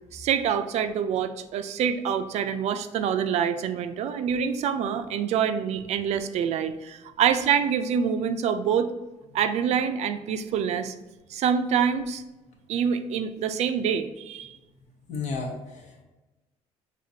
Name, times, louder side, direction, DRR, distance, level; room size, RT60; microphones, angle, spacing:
voice 1, 0.1-8.9 9.3-10.9 11.3-12.2 12.7-14.5, right 7 dB, 65° right, 9 dB, 0.4 m, -26 dB
voice 2, 15.1-16.0, left 4 dB, 70° left, 1 dB, 1.1 m, -33 dB
5.1 x 3.7 x 2.7 m, 1.1 s
cardioid pair, 105°, 12 cm